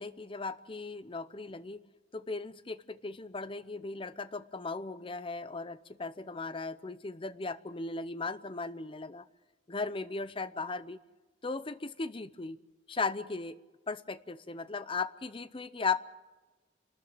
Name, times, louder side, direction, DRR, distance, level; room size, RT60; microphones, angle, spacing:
voice 1, 0.0-1.8 2.1-9.2 9.7-11.0 11.4-12.6 12.9-13.6 13.9-16.0, left 4 dB, 30° left, 0.7 m, -37 dB
29.5 x 13.5 x 7.6 m
head